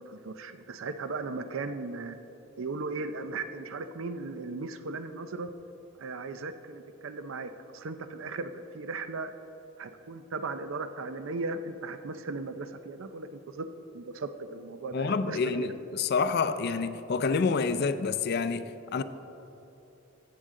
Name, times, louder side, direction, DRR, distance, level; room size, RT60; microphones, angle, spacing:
voice 1, 0.0-2.2 2.6-5.5 6.0-9.3 9.8-13.7 13.9-15.7, right 3 dB, 80° right, 10 dB, 0.5 m, -37 dB
voice 2, 14.9-19.0, left 4 dB, 55° left, 12 dB, 0.4 m, -28 dB
14.5 x 7.7 x 3.7 m, 3.0 s
head